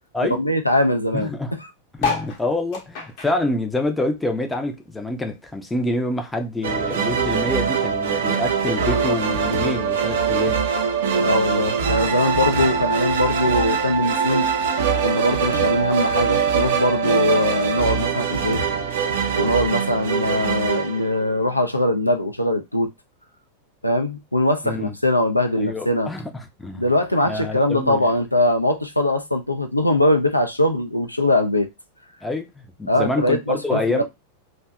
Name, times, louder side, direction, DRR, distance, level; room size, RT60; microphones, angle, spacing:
voice 1, 0.3-1.3 11.2-14.5 15.0-18.6 19.4-22.9 23.8-26.1 26.7-31.7 32.9-34.0, left 1 dB, 85° left, 0.3 m, -21 dB
voice 2, 1.1-1.5 2.0-10.6 24.6-25.0 25.6-26.8 27.2-28.1 32.2-34.0, left 2 dB, 10° left, 0.4 m, -26 dB
sound 1, 1.9-4.7 5.1-6.6 7.1-7.2 7.3-7.4 7.6-8.0 8.8-8.9, left 5 dB, 50° left, 0.7 m, -31 dB
sound 2, 6.6-21.6, right 6 dB, 60° right, 0.5 m, -23 dB
2.6 x 2.1 x 2.3 m
figure-of-eight pair, 90°, 0 cm